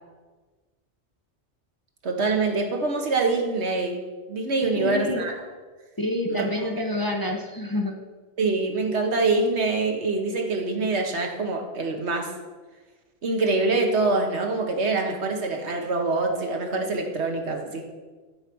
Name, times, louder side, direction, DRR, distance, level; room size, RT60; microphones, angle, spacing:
voice 1, 2.0-4.0 4.3-5.4 6.3-6.5 8.4-12.3 13.2-17.8, right 3 dB, 70° right, 3 dB, 1.5 m, -25 dB
voice 2, 4.6-5.2 6.0-8.0, left 1 dB, 20° left, 2 dB, 0.8 m, -27 dB
11.0 x 4.9 x 6.1 m, 1.3 s
omnidirectional pair, 1.2 m